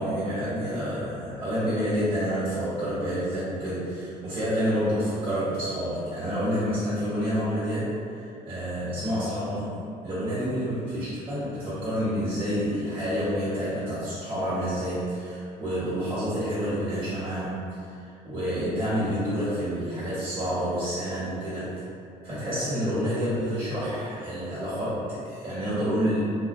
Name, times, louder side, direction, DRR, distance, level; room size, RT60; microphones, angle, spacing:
voice 1, 0.0-9.8 10.0-17.7 18.0-21.8 22.2-26.2, equal, 30° right, -11 dB, 1.4 m, -28 dB
2.3 x 2.1 x 2.5 m, 2.5 s
cardioid pair, 110°, 17 cm